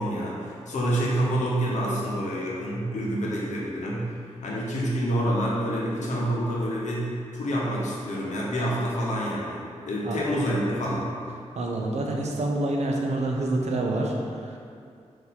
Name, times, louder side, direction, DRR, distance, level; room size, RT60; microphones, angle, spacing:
voice 1, 0.0-4.1 4.4-11.1, equal, 90° left, -4 dB, 0.9 m, -27 dB
voice 2, 11.6-14.6, right 2 dB, 70° right, 0 dB, 0.6 m, -27 dB
4.2 x 2.6 x 4.1 m, 2.3 s
wide cardioid pair, 125°, 12 cm